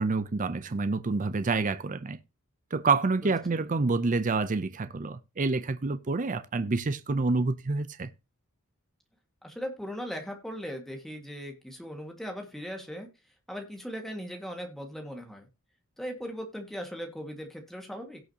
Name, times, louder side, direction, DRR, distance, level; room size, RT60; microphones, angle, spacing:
voice 1, 0.0-2.2 2.7-8.1, right 3 dB, 40° right, 0.5 m, -28 dB
voice 2, 3.2-3.6 9.4-13.1 13.5-15.5 16.0-18.2, equal, ahead, 1.8 m, -39 dB
17.5 x 6.3 x 2.9 m
head